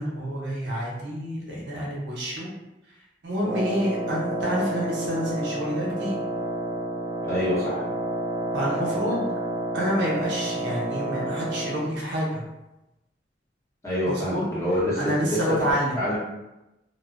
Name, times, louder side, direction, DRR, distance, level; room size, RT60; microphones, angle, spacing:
voice 1, 0.0-2.5 3.2-6.2 8.5-9.3 9.7-12.4 14.1-14.4 14.9-16.0, equal, 75° right, -4 dB, 0.7 m, -28 dB
Wind instrument woodwind instrument, 3.4-12.0, right 2 dB, 15° right, 0.4 m, -30 dB
voice 2, 7.3-7.8 13.8-15.4 15.9-16.2, left 1 dB, 15° left, -9 dB, 0.8 m, -26 dB
2.5 x 2.1 x 2.3 m, 0.96 s
head